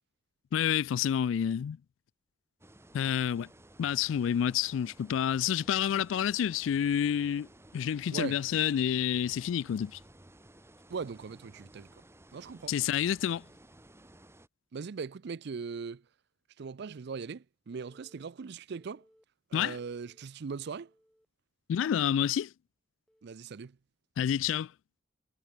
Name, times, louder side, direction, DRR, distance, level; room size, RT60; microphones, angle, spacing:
voice 1, 0.5-1.8 2.9-3.5 3.8-7.5 7.7-10.0 12.7-13.4 19.5-19.8 21.7-22.5 24.2-24.7, left 9 dB, 80° left, 0.3 m, -29 dB
sound 1, 2.6-14.5, right 1 dB, 15° right, 1.7 m, -56 dB
voice 2, 10.9-11.9 12.3-12.7 14.7-16.0 16.6-19.0 19.5-20.9 23.2-23.8, right 5 dB, 60° right, 0.5 m, -39 dB
Telephone, 17.1-17.2 17.7-18.2 18.7-19.2 19.7-20.2 20.7-21.3 21.7-22.1 23.1-23.3, equal, 5° left, 2.7 m, -65 dB
head